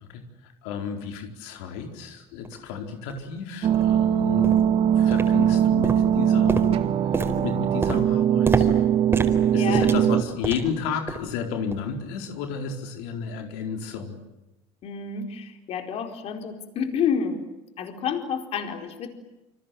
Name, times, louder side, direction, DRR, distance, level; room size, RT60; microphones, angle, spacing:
voice 1, 0.1-6.7 7.1-8.7 9.5-14.2, left 6 dB, 90° left, 4 dB, 4.5 m, -32 dB
sound 1, 2.4-2.5 3.1-3.2 3.7-3.9 4.4-4.7 5.1-5.6 5.8-10.8 11.1-11.4 11.7-11.9 12.4-12.5, right 3 dB, 15° right, 4.6 m, -30 dB
sound 2, 3.6-10.2, right 10 dB, 50° right, 2.2 m, -21 dB
voice 2, 9.5-9.9 10.6-10.7 14.8-17.4 17.8-19.1, left 7 dB, 50° left, 5 dB, 4.5 m, -29 dB
28.5 x 26.0 x 7.8 m, 0.99 s
cardioid pair, 125°, 13 cm